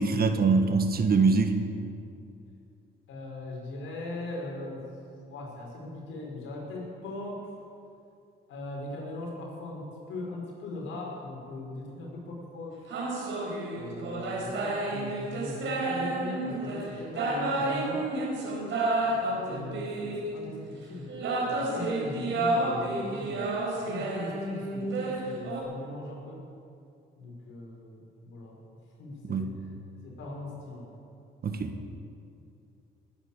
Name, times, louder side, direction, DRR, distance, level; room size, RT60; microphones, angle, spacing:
voice 1, 0.0-1.5 29.3-29.5 31.4-31.7, right 4 dB, 50° right, 7 dB, 1.6 m, -24 dB
voice 2, 3.1-4.8 5.2-7.5 8.5-12.9 13.7-18.1 18.7-21.1 21.5-23.5 23.8-26.4 27.2-28.6 29.0-29.5 30.0-31.0, left 2 dB, 80° left, -2 dB, 5.3 m, -40 dB
sound 1, 12.9-20.5 21.1-25.6, right 2 dB, 75° right, 4.5 m, -30 dB
20.0 x 9.9 x 7.3 m, 2.5 s
cardioid pair, 90°, 20 cm